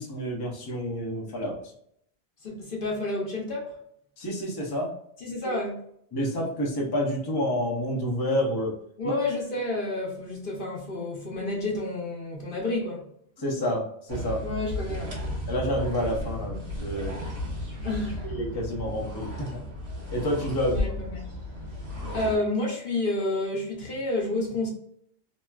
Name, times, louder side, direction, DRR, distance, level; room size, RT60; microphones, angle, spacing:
voice 1, 0.0-1.6 4.2-4.9 5.4-5.6 6.1-8.7 9.0-9.2 13.4-14.4 15.5-17.2 18.2-19.7 20.1-20.8, equal, 25° left, 0.7 m, -29 dB
voice 2, 2.4-3.8 5.2-5.8 9.0-13.0 14.4-15.2 17.8-18.4 20.6-21.3 22.1-24.7, left 2 dB, 55° left, 0.9 m, -30 dB
sound 1, 14.1-22.4, left 1 dB, 65° right, 1.4 m, -34 dB
3.0 x 2.7 x 2.3 m
omnidirectional pair, 1.1 m